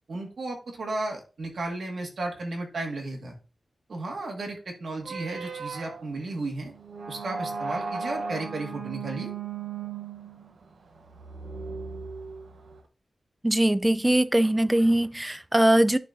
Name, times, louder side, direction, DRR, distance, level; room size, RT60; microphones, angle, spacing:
voice 1, 0.1-3.3 3.9-6.7 7.1-9.3, right 2 dB, 65° right, 2.0 m, -34 dB
sound 1, 5.0-12.8, right 5 dB, 85° right, 1.0 m, -36 dB
voice 2, 13.4-16.0, right 1 dB, 10° right, 0.4 m, -21 dB
11.5 x 4.4 x 2.7 m
wide cardioid pair, 140°, 0 cm